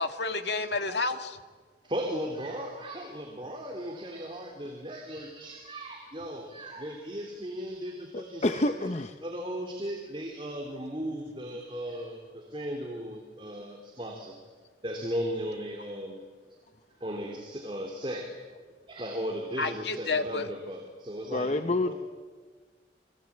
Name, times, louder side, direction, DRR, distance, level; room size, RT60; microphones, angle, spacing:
voice 1, 0.0-1.4 19.6-20.5, left 3 dB, 75° left, 7 dB, 2.0 m, -30 dB
voice 2, 1.9-8.9 9.2-14.3 14.8-16.2 17.0-18.3 18.9-21.9, equal, 30° right, 1 dB, 3.2 m, -36 dB
voice 3, 8.1-9.2 21.2-21.9, left 2 dB, 40° left, 8 dB, 0.9 m, -28 dB
30.0 x 23.0 x 8.7 m, 1.4 s
head